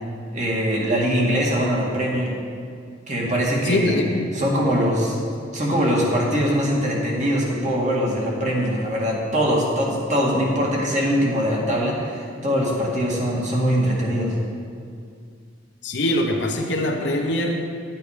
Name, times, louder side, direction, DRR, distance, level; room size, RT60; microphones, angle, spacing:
voice 1, 0.3-2.3 3.1-4.0 4.3-5.2 5.5-14.4, equal, 40° right, -3 dB, 2.0 m, -22 dB
voice 2, 3.6-4.2 15.8-17.6, left 1 dB, 70° left, 1 dB, 1.0 m, -23 dB
11.0 x 8.4 x 5.0 m, 2.2 s
head